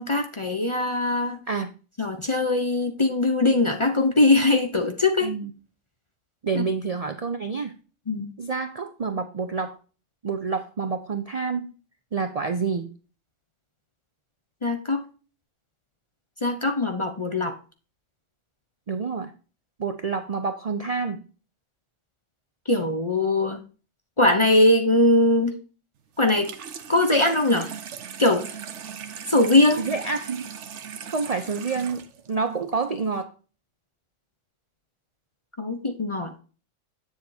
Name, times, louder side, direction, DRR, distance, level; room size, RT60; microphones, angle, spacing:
voice 1, 0.0-1.4 2.0-5.3 6.5-6.6 8.1-8.3 14.6-15.0 16.4-17.6 22.7-23.6 24.2-25.5 26.2-26.5 26.9-27.7 28.2-28.5 29.3-29.9 35.6-36.3, left 2 dB, 30° left, 6 dB, 0.6 m, -21 dB
voice 2, 6.4-7.7 8.4-9.8 10.2-11.7 12.1-12.9 18.9-19.3 19.8-21.2 29.8-30.5 31.1-33.3, right 4 dB, 45° right, 8 dB, 0.5 m, -28 dB
Water tap faucet / Sink (filling or washing), 26.2-33.2, right 8 dB, 65° right, 1.1 m, -39 dB
8.0 x 7.2 x 2.7 m, 0.36 s
omnidirectional pair, 1.3 m